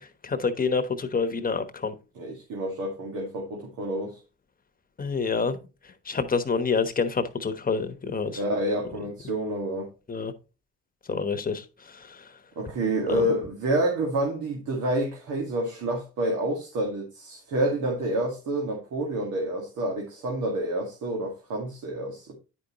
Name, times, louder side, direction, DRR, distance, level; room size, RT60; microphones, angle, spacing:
voice 1, 0.0-2.0 5.0-5.6 6.1-8.4 10.1-10.3 11.1-12.3 13.1-13.2, left 4 dB, 30° left, 1.1 m, -28 dB
voice 2, 2.2-4.2 8.3-9.9 12.6-22.4, right 1 dB, 80° right, 2.1 m, -28 dB
9.3 x 5.3 x 2.9 m
cardioid pair, 90°, 30 cm